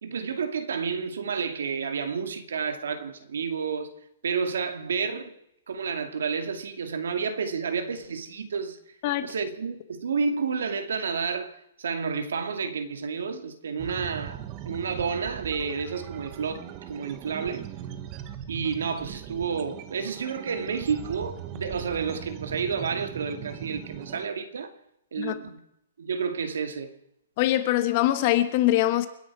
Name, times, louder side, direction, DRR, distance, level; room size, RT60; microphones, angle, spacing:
voice 1, 0.0-3.9 4.2-5.3 5.7-8.8 9.2-17.6 18.5-24.7 25.1-25.6 26.0-26.9, right 5 dB, 75° right, 2.4 m, -30 dB
sound 1, 13.8-24.3, right 10 dB, 20° right, 0.9 m, -40 dB
voice 2, 27.4-29.1, left 14 dB, 25° left, 1.1 m, -23 dB
29.0 x 10.5 x 4.8 m
hypercardioid pair, 180°, 0 cm